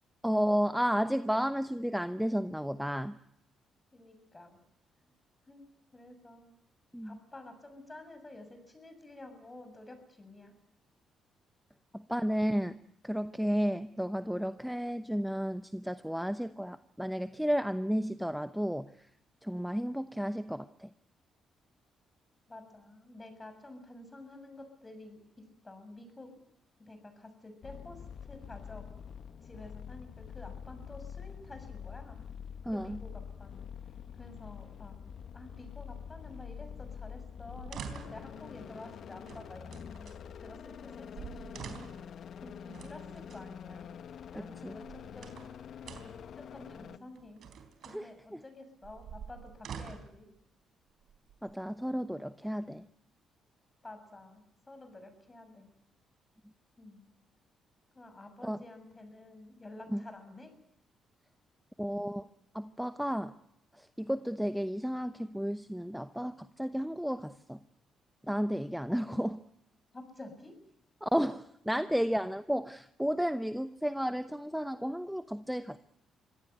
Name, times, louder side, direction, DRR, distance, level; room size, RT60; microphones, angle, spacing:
voice 1, 0.2-3.2 6.9-7.2 11.9-12.8 13.0-19.1 19.4-20.9 32.6-33.0 44.3-44.7 47.9-48.4 51.4-52.9 58.4-58.6 59.9-60.0 61.8-62.3 62.5-63.3 63.7-67.6 68.2-69.4 71.0-75.8, equal, ahead, 12 dB, 0.8 m, -32 dB
voice 2, 3.9-4.6 5.5-6.6 7.0-10.5 22.5-26.4 26.8-28.8 29.4-32.2 32.7-33.7 34.1-35.0 35.3-41.8 42.4-44.0 44.3-45.5 46.4-47.4 47.8-50.3 53.8-55.7 56.8-57.1 57.9-60.5 69.9-70.5, left 2 dB, 20° left, 8 dB, 7.0 m, -50 dB
sound 1, 27.6-47.0, left 8 dB, 65° left, 1.1 m, -46 dB
sound 2, 37.5-38.3 39.2-40.2 40.9-41.0 41.1-42.1 42.7-43.4 44.6-45.5 45.8-46.3 47.2-48.0 48.8-50.2 51.0-51.7, right 7 dB, 70° right, 3.8 m, -46 dB
25.0 x 17.0 x 9.4 m, 0.78 s
cardioid pair, 90°, 0 cm